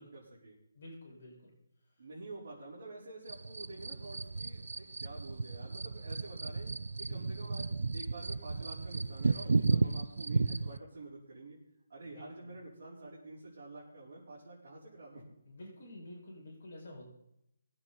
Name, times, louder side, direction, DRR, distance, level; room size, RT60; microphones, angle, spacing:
voice 1, 0.0-0.6 2.0-6.7 7.0-11.6 11.9-15.2, right 2 dB, 45° right, -8 dB, 4.6 m, -48 dB
voice 2, 0.7-1.6 1.8-2.0 7.0-7.4 9.7-10.1 12.0-12.5 15.4-17.1, left 1 dB, 40° left, -4 dB, 6.1 m, -50 dB
sound 1, 3.3-10.8, right 4 dB, 80° right, 0.5 m, -34 dB
21.5 x 8.7 x 4.3 m, 0.82 s
hypercardioid pair, 180°, 0 cm